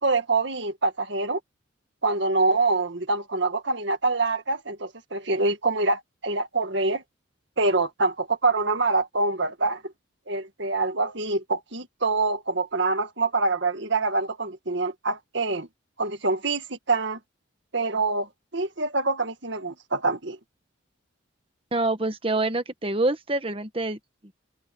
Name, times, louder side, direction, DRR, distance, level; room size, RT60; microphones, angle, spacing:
voice 1, 0.0-1.4 2.0-7.0 7.6-9.8 10.3-15.7 16.0-17.2 17.7-18.3 18.5-20.4, right 3 dB, 60° right, 1.9 m, -25 dB
voice 2, 21.7-24.0, right 2 dB, 25° right, 1.4 m, -26 dB
head